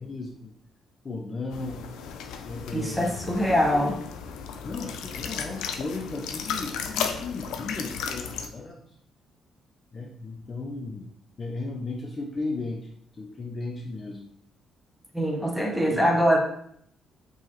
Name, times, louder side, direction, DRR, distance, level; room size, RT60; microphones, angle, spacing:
voice 1, 0.0-0.5 1.0-1.8 2.5-3.2 3.7-3.9 4.6-8.8 9.9-11.1 11.4-12.9 13.2-14.3 15.9-16.0, left 3 dB, 35° left, 1 dB, 0.5 m, -35 dB
sound 1, 1.5-8.5, left 7 dB, 90° left, 0.4 m, -35 dB
voice 2, 2.7-4.0 15.1-16.4, equal, 5° left, 0 dB, 0.9 m, -23 dB
4.7 x 2.9 x 2.9 m, 0.67 s
cardioid pair, 90°, 0 cm